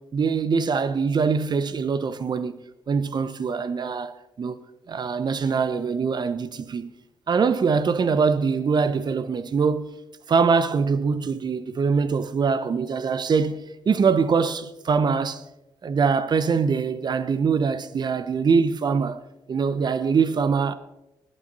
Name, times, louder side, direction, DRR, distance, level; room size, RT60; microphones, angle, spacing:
voice 1, 0.0-2.6 2.9-4.1 4.4-4.6 4.9-6.9 7.3-9.9 10.3-15.4 15.8-19.2 19.5-20.7, right 5 dB, 45° right, 1.0 m, -23 dB
20.0 x 8.9 x 4.1 m
hypercardioid pair, 45°, 10 cm